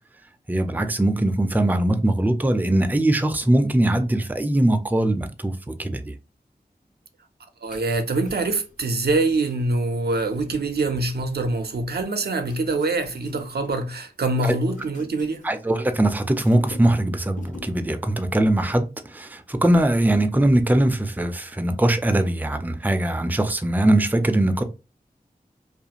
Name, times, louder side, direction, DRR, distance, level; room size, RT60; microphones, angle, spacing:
voice 1, 0.5-6.1 14.4-14.6 15.4-24.6, right 1 dB, 10° right, 0.4 m, -21 dB
voice 2, 7.6-15.4, right 2 dB, 80° right, 0.5 m, -24 dB
sound 1, 7.7-11.6 12.1-14.0 14.3-16.0 16.2-17.0 17.3-17.8 18.1-18.4, left 2 dB, 50° left, 0.7 m, -44 dB
2.4 x 2.4 x 2.9 m
wide cardioid pair, 45°, 16 cm